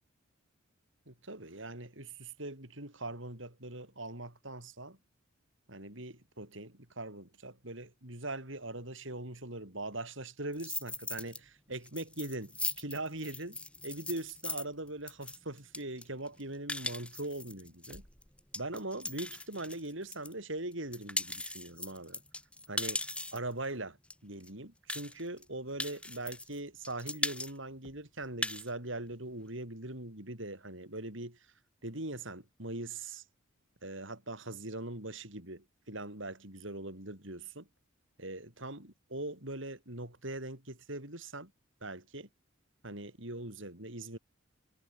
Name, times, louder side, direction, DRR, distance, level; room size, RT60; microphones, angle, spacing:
voice 1, 1.1-5.0 5.7-18.0 18.5-22.2 22.7-23.0 23.3-24.0 24.2-31.5 31.8-33.2 33.8-37.7 38.2-41.5 41.8-42.3 42.8-44.2, right 2 dB, 65° right, 6.0 m, -41 dB
sound 1, 10.5-11.4 11.7-20.3 20.7-23.5 24.1-24.2 24.4-24.5 24.9-25.4 25.8-26.6 26.8-27.5 27.8-27.9 28.2-28.7, left 2 dB, 5° left, 2.9 m, -39 dB
head